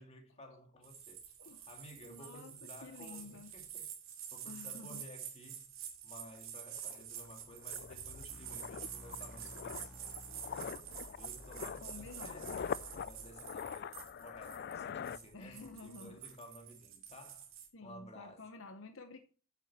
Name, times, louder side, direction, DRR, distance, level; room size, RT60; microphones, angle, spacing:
voice 1, 0.0-1.2 1.7-3.9 4.3-5.7 6.0-17.5 17.8-18.4, left 1 dB, 30° left, 2.2 m, -55 dB
sound 1, 0.8-17.7, right 9 dB, 85° right, 2.4 m, -48 dB
voice 2, 2.1-3.5 4.5-5.0 11.6-12.6 15.3-16.2 17.7-19.2, left 3 dB, 75° left, 0.9 m, -51 dB
sound 2, 6.4-6.5 6.8-15.8 16.1-16.4, left 7 dB, 50° left, 0.3 m, -44 dB
sound 3, 8.3-13.3, equal, 5° right, 2.5 m, -55 dB
8.4 x 7.1 x 4.2 m
head